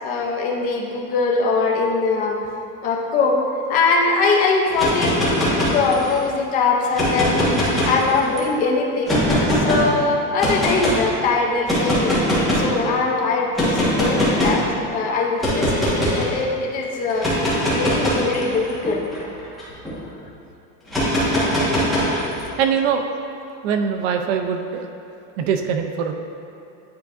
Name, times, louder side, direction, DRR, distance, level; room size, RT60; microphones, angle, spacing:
voice 1, 0.0-2.4 2.8-3.4 3.7-9.1 9.5-12.1 12.5-17.3 17.7-19.0, left 4 dB, 20° left, -1 dB, 0.5 m, -22 dB
sound 1, 4.7-6.2 6.8-8.4 9.1-9.8 10.4-11.0 11.6-12.7 13.6-14.6 15.4-16.2 17.1-19.9 20.9-22.4, equal, ahead, 1.3 m, -21 dB
voice 2, 22.6-23.1 23.6-24.9 25.4-26.1, right 7 dB, 55° right, 5 dB, 0.5 m, -22 dB
9.5 x 4.5 x 2.5 m, 2.8 s
supercardioid pair, 170°, 39 cm